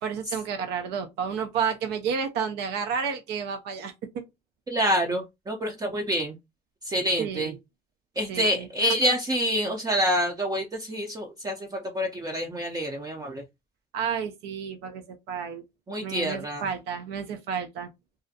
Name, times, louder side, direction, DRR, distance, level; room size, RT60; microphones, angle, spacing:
voice 1, 0.0-4.2 7.2-7.6 8.3-8.7 13.9-15.6 16.0-17.9, right 6 dB, 80° right, 0.5 m, -31 dB
voice 2, 4.7-6.3 6.9-7.5 8.2-11.5 11.9-13.4 15.9-16.6, equal, 20° right, 0.4 m, -27 dB
2.4 x 2.1 x 2.6 m
cardioid pair, 110°, 17 cm